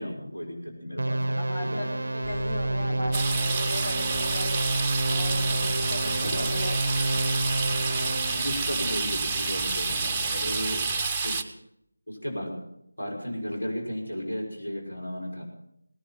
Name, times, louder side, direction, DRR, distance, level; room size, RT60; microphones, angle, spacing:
voice 1, 0.0-1.8 2.6-3.1 6.2-6.5 8.3-10.8 11.2-11.3 12.1-12.5 13.0-15.4, equal, 70° left, 0 dB, 6.1 m, -34 dB
sound 1, 1.0-8.5, right 1 dB, 60° right, 0.5 m, -29 dB
voice 2, 1.4-4.5 5.1-6.8 10.7-11.2, left 1 dB, 45° left, 1 dB, 3.7 m, -38 dB
sound 2, 2.2-10.9, left 1 dB, 10° left, 4.4 m, -42 dB
sound 3, 3.1-11.4, right 4 dB, 10° right, 0.6 m, -29 dB
18.5 x 11.0 x 5.9 m, 0.75 s
figure-of-eight pair, 165°, 0 cm